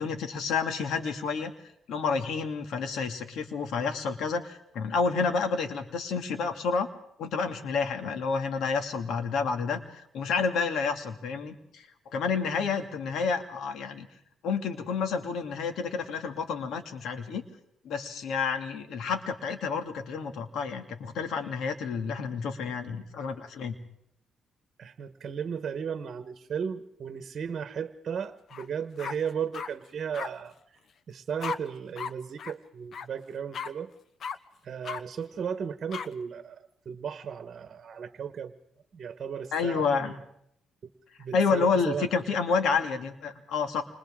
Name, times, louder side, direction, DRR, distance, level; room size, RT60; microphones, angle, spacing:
voice 1, 0.0-1.5 1.9-6.9 7.2-11.9 12.1-14.1 14.4-17.4 17.8-23.7 39.5-40.1 41.3-43.8, left 5 dB, 75° left, 6 dB, 2.4 m, -29 dB
voice 2, 24.8-30.6 31.1-33.9 34.6-38.5 38.9-40.2 41.2-42.1, right 7 dB, 50° right, 9 dB, 1.3 m, -35 dB
sound 1, 28.5-28.7 29.0-29.7 30.1-30.3 31.4-31.6 32.0-32.1 32.4-32.5 32.9-33.1 33.5-33.7 34.2-34.4 34.8-35.0 35.9-36.1, left 6 dB, 60° left, 1.0 m, -35 dB
29.0 x 26.5 x 3.8 m, 0.73 s
cardioid pair, 90°, 0 cm